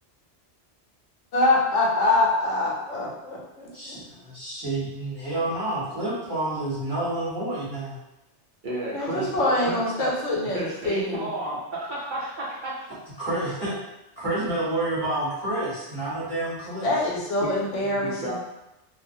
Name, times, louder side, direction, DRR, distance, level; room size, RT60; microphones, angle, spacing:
voice 1, 1.3-3.4 3.9-4.0 8.9-11.3 16.8-18.3, left 2 dB, 90° left, -3 dB, 1.0 m, -24 dB
voice 2, 3.7-8.0 9.1-9.3 13.2-13.8 14.2-16.9, right 2 dB, 20° right, -10 dB, 0.9 m, -29 dB
voice 3, 8.6-10.1 10.5-12.9 17.4-18.3, right 1 dB, 55° right, -6 dB, 0.7 m, -32 dB
2.4 x 2.0 x 2.6 m, 0.95 s
omnidirectional pair, 1.2 m